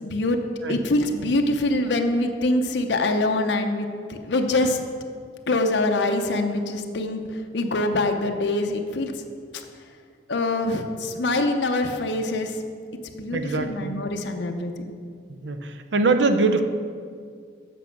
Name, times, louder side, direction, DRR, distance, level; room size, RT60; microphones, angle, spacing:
voice 1, 0.0-0.4 0.7-4.8 5.5-9.1 9.5-9.6 10.3-12.6 13.1-14.9, left 2 dB, 80° left, 4 dB, 0.7 m, -24 dB
voice 2, 13.3-14.0 15.3-16.6, right 3 dB, 80° right, 8 dB, 0.6 m, -23 dB
8.2 x 6.0 x 5.9 m, 2.1 s
head